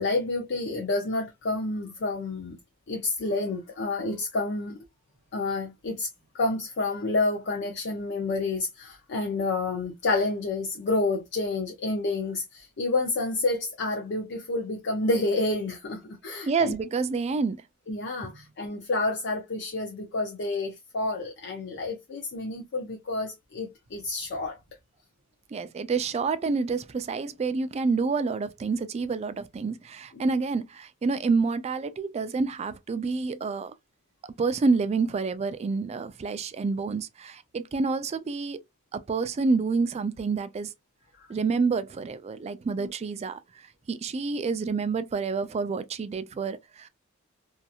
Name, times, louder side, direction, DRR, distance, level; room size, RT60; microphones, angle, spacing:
voice 1, 0.0-2.6 2.9-4.8 5.3-6.1 6.3-16.7 17.9-24.6 30.2-30.3 41.2-41.3 42.8-42.9, left 2 dB, 55° left, 0.5 m, -29 dB
voice 2, 16.5-17.6 18.2-18.3 25.5-33.7 34.4-38.6 38.9-40.7 41.3-46.9, right 4 dB, 30° right, 0.3 m, -28 dB
2.8 x 2.4 x 2.3 m
head